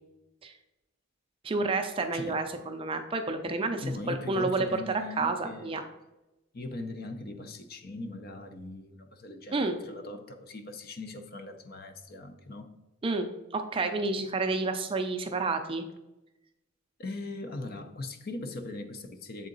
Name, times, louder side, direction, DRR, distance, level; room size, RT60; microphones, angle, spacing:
voice 1, 1.4-5.8 9.5-9.8 13.0-13.3 13.5-15.8, right 3 dB, 25° right, 0.4 m, -30 dB
voice 2, 2.1-2.4 3.5-5.8 6.5-12.7 17.0-19.5, left 2 dB, 45° left, 0.5 m, -40 dB
7.2 x 3.7 x 3.9 m
head